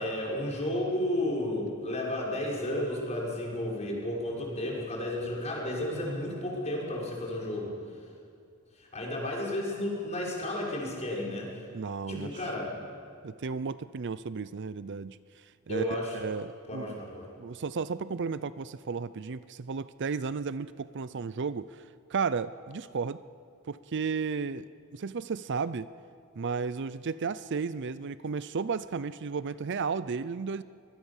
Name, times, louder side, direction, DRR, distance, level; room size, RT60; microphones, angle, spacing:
voice 1, 0.0-7.7 8.8-11.5 12.1-12.7 15.7-16.2 16.7-17.3, left 1 dB, 30° left, -3 dB, 6.0 m, -32 dB
voice 2, 11.7-12.3 13.2-17.0 17.4-23.2 23.7-24.7 24.9-25.9 26.4-30.6, right 5 dB, 55° right, 15 dB, 0.5 m, -34 dB
25.0 x 21.0 x 7.3 m, 2.3 s
head